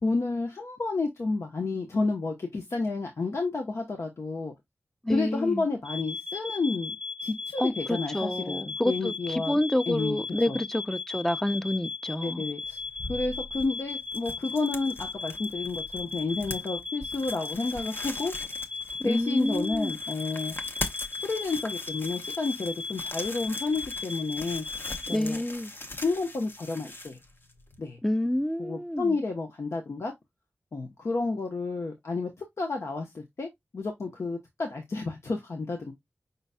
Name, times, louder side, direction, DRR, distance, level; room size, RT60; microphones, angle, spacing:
voice 1, 0.0-4.5 5.1-6.9 7.2-9.6 9.9-10.6 12.2-12.8 13.1-18.3 19.0-20.5 21.2-24.6 25.1-25.4 26.0-27.2 27.8-28.0 28.6-30.1 30.7-35.9, left 3 dB, 80° left, 0.9 m, -31 dB
voice 2, 5.0-5.6 7.6-12.5 19.0-19.9 25.1-25.7 28.0-29.2, left 1 dB, 10° left, 0.5 m, -28 dB
sound 1, 5.8-25.2, left 4 dB, 10° right, 0.9 m, -37 dB
sound 2, 12.6-27.8, left 1 dB, 50° left, 0.9 m, -41 dB
5.4 x 4.0 x 2.2 m
cardioid pair, 50°, 5 cm